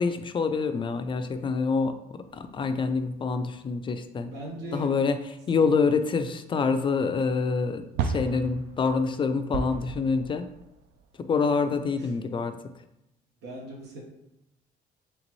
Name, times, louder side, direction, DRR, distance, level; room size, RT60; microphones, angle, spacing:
voice 1, 0.0-4.3 4.7-10.5 11.2-12.6, left 4 dB, 30° left, 9 dB, 0.3 m, -26 dB
sound 1, 2.3-3.9 4.2-4.3 6.6-6.7 7.9-11.9, right 5 dB, 70° right, 0.4 m, -35 dB
voice 2, 4.3-4.9 5.6-5.7 11.7-12.1 13.4-14.0, equal, 90° right, -1 dB, 1.2 m, -39 dB
4.0 x 3.5 x 3.0 m, 0.85 s
cardioid pair, 110°, 17 cm